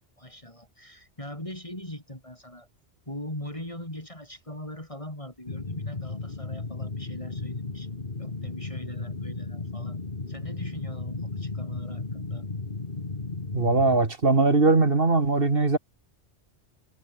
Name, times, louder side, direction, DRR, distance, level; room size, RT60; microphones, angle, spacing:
voice 1, 0.2-2.7 3.1-7.9 8.2-10.0 10.3-12.5, left 1 dB, 30° left, 5.3 m, -41 dB
sound 1, 5.5-14.0, left 3 dB, 45° left, 2.2 m, -35 dB
voice 2, 13.5-15.8, right 3 dB, 55° right, 2.4 m, -21 dB
omnidirectional pair, 1.2 m